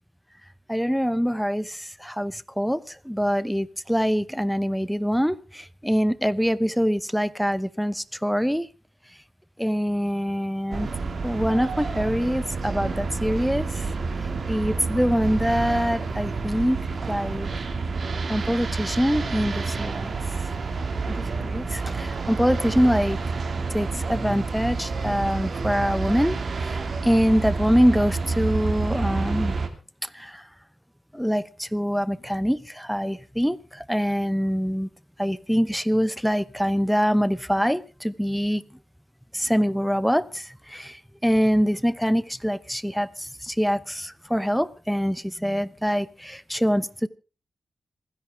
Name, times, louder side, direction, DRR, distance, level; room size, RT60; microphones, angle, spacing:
voice 1, 0.7-8.7 9.6-10.9 11.2-13.9 14.5-16.8 17.1-17.5 18.3-20.2 21.1-23.2 23.7-29.6 30.0-30.4 31.1-34.9 35.2-38.6 39.3-47.1, equal, ahead, 17 dB, 0.8 m, -24 dB
sound 1, 10.7-29.7, right 4 dB, 60° right, 2.1 m, -29 dB
27.0 x 10.5 x 3.5 m, 0.32 s
cardioid pair, 85°, 0 cm